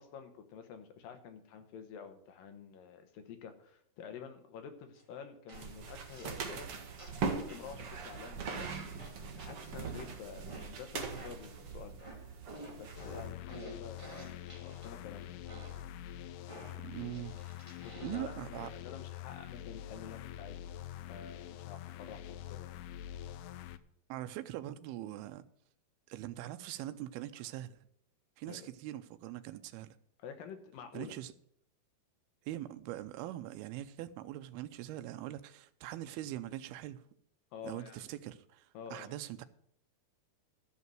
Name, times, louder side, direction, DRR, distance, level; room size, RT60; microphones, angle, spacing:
voice 1, 0.0-6.7 7.2-9.1 9.4-12.1 12.8-14.3 14.6-15.5 17.8-20.7 21.1-22.8 28.5-28.7 30.2-31.1 37.5-38.1 38.7-39.2, left 7 dB, 70° left, 2.7 m, -49 dB
sound 1, 4.9-5.0 5.5-6.5 7.0-7.8 8.5-11.6 12.0-14.9 15.5-15.9 16.5-18.4, right 1 dB, 15° right, 1.3 m, -52 dB
sound 2, 5.5-13.3, right 5 dB, 55° right, 1.6 m, -41 dB
sound 3, 13.0-23.8, left 11 dB, 85° left, 2.6 m, -45 dB
voice 2, 16.8-17.3 18.0-18.7 24.1-25.4 26.1-27.8 28.4-29.9 30.9-31.3 32.5-37.0 37.6-39.4, right 14 dB, 80° right, 2.6 m, -42 dB
13.0 x 5.7 x 7.7 m
omnidirectional pair, 4.5 m